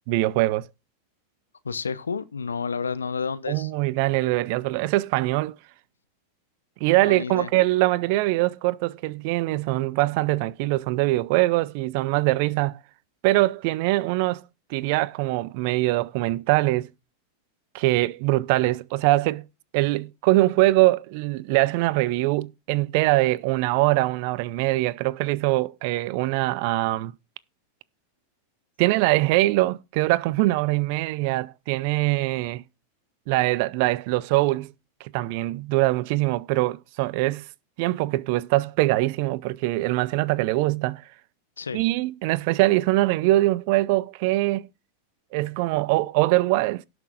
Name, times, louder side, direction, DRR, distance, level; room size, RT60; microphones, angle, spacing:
voice 1, 0.1-0.6 3.5-5.6 6.8-12.8 13.2-14.4 14.7-16.9 17.7-19.4 19.7-27.1 28.8-32.6 33.3-34.7 35.0-37.4 37.8-41.0 41.7-44.7 45.3-46.8, right 19 dB, 55° right, 0.5 m, -23 dB
voice 2, 1.6-3.7 7.0-7.5 41.6-41.8, left 5 dB, 80° left, 0.8 m, -30 dB
17.5 x 6.1 x 2.5 m
figure-of-eight pair, 90°, 0 cm